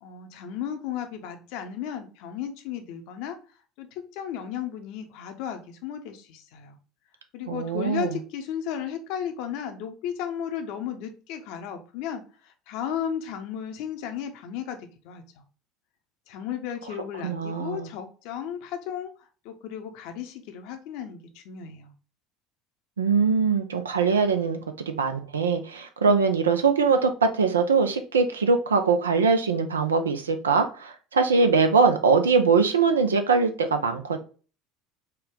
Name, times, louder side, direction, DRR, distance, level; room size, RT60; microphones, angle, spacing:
voice 1, 0.0-3.4 3.8-6.8 7.3-15.4 16.3-19.1 19.4-21.9, left 9 dB, 60° left, 6 dB, 0.7 m, -34 dB
voice 2, 7.5-8.2 17.2-17.9 23.0-24.6 24.9-34.2, right 5 dB, 80° right, 7 dB, 0.5 m, -22 dB
4.4 x 2.3 x 3.5 m, 0.37 s
figure-of-eight pair, 65°, 0 cm